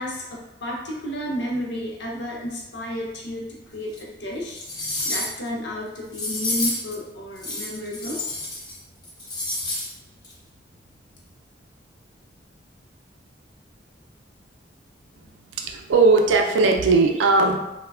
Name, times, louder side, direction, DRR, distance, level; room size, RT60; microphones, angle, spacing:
voice 1, 0.0-4.6 5.0-8.2, equal, 70° left, -3 dB, 0.6 m, -32 dB
sound 1, 3.9-4.0 4.5-5.5 6.1-6.9 7.4-8.8 9.0-9.9 10.2-10.3, left 2 dB, 25° left, 0.5 m, -29 dB
voice 2, 15.5-17.6, right 3 dB, 90° right, 3 dB, 0.4 m, -18 dB
3.1 x 2.1 x 2.3 m, 0.94 s
head